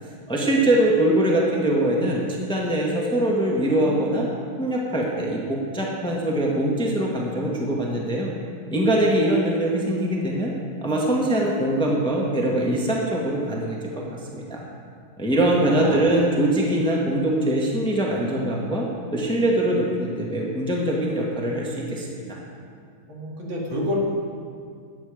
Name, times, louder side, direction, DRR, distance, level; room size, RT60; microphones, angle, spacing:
voice 1, 0.3-2.2 2.5-4.3 4.6-8.3 8.7-10.5 10.8-14.0 14.3-14.6 15.2-18.8 19.1-22.4, right 1 dB, 5° left, -3 dB, 1.5 m, -22 dB
voice 2, 15.7-16.2 23.1-24.0, equal, 75° right, -3 dB, 3.0 m, -29 dB
14.5 x 9.5 x 5.1 m, 2.2 s
omnidirectional pair, 2.2 m